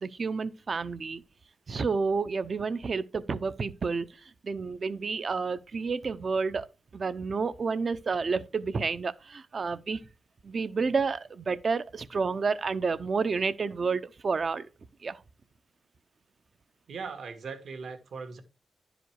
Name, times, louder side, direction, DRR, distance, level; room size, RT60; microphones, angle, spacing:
voice 1, 0.0-1.2 1.7-6.7 6.9-10.0 10.4-14.7 15.0-15.2, right 4 dB, 40° right, 0.6 m, -30 dB
voice 2, 16.9-18.4, right 5 dB, 65° right, 1.7 m, -39 dB
11.0 x 5.1 x 4.6 m
wide cardioid pair, 160°, 0 cm